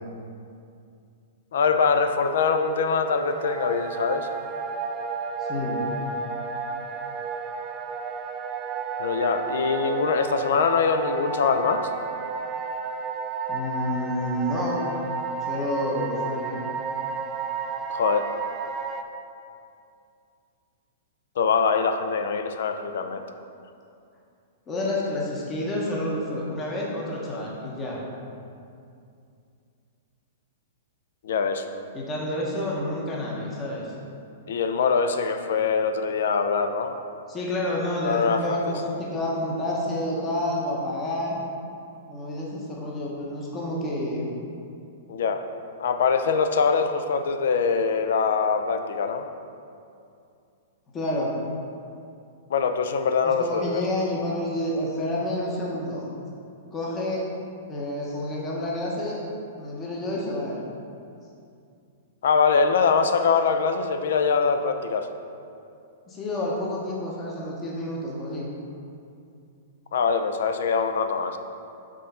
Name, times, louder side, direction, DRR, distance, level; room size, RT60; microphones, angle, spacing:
voice 1, 1.5-4.3 9.0-11.9 17.9-18.3 21.4-23.2 31.2-31.7 34.5-37.0 38.0-38.6 45.1-45.4 45.8-49.3 52.5-53.9 62.2-65.1 69.9-71.4, left 5 dB, 70° left, 8 dB, 0.5 m, -23 dB
sound 1, 2.5-19.0, right 5 dB, 20° right, 0.3 m, -32 dB
voice 2, 5.4-5.9 13.5-14.8 15.5-16.6 24.7-28.0 31.9-33.9 37.3-41.4 42.1-44.5 50.9-51.3 53.2-56.1 56.7-57.2 57.7-59.2 59.6-60.7 66.0-68.5, left 1 dB, 15° left, -4 dB, 0.8 m, -29 dB
6.1 x 3.8 x 5.6 m, 2.5 s
supercardioid pair, 170°, 0 cm